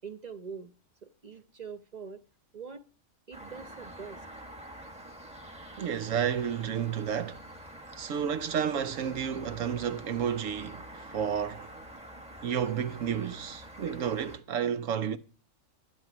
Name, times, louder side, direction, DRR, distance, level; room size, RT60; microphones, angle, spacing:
voice 1, 0.0-0.7 1.0-2.2 2.5-2.9 3.3-4.2, right 6 dB, 40° right, 0.7 m, -43 dB
sound 1, 3.3-14.4, right 1 dB, 5° right, 1.3 m, -47 dB
voice 2, 5.8-7.4 8.0-11.7 12.4-15.2, right 8 dB, 75° right, 1.2 m, -31 dB
11.5 x 9.3 x 6.1 m
omnidirectional pair, 1.4 m